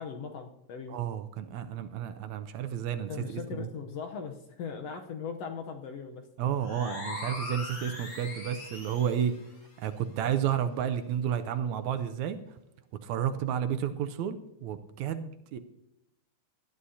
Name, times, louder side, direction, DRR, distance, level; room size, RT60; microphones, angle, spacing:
voice 1, 0.0-1.0 3.1-6.3, left 6 dB, 65° left, 4 dB, 1.7 m, -39 dB
voice 2, 0.9-3.7 6.4-9.3 9.8-12.4 13.0-15.6, right 9 dB, 80° right, 9 dB, 1.9 m, -31 dB
sound 1, 6.6-9.3, left 2 dB, 45° left, 3.9 m, -40 dB
19.0 x 11.5 x 2.8 m, 0.86 s
omnidirectional pair, 3.5 m